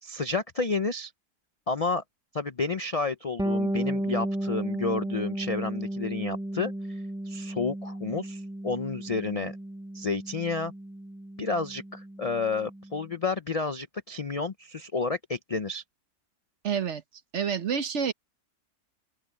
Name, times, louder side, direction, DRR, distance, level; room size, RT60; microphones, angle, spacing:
voice 1, 0.0-1.1 1.7-2.0 2.3-9.6 9.9-10.7 11.4-15.8, left 4 dB, 60° left, 0.3 m, -31 dB
Bass guitar, 3.4-13.0, right 1 dB, 5° right, 1.5 m, -34 dB
voice 2, 16.6-17.0 17.3-18.1, right 7 dB, 50° right, 1.2 m, -28 dB
open air
omnidirectional pair, 1.7 m